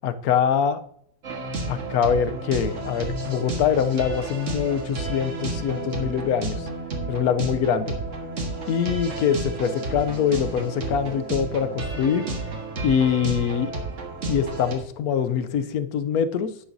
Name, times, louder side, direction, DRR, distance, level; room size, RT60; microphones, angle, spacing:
voice 1, 0.0-0.8 1.7-6.7 7.1-7.9 8.7-12.3 12.8-13.7 14.3-16.6, left 8 dB, 90° left, 11 dB, 1.2 m, -24 dB
sound 1, 1.2-14.8, right 2 dB, 55° right, 1.7 m, -31 dB
11.0 x 8.9 x 2.7 m, 0.66 s
omnidirectional pair, 1.5 m